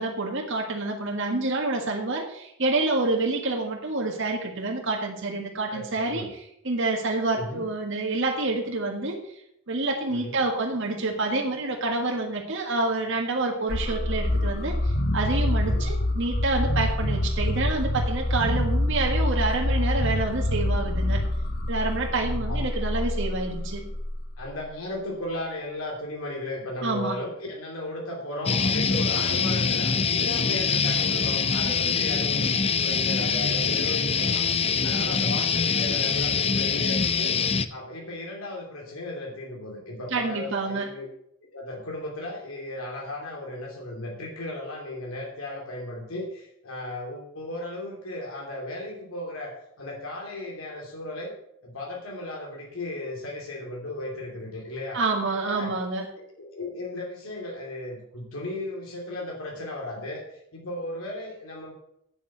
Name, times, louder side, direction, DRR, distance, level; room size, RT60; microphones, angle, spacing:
voice 1, 0.0-9.2 9.7-21.2 21.7-23.8 26.8-27.2 40.1-40.9 54.9-56.1, right 2 dB, 65° right, 1 dB, 1.7 m, -28 dB
voice 2, 5.7-6.3 7.3-7.6 10.1-10.4 15.6-15.9 17.0-17.1 22.2-22.7 24.4-32.5 32.8-34.5 34.8-37.4 37.7-41.1 41.5-51.3 51.6-55.0 55.4-55.7 56.4-61.7, left 1 dB, 85° left, -1 dB, 2.7 m, -35 dB
sound 1, 13.7-24.6, left 1 dB, 50° left, 1.1 m, -26 dB
sound 2, 28.5-37.7, left 5 dB, 30° left, 0.6 m, -24 dB
8.8 x 7.3 x 7.2 m, 0.74 s
head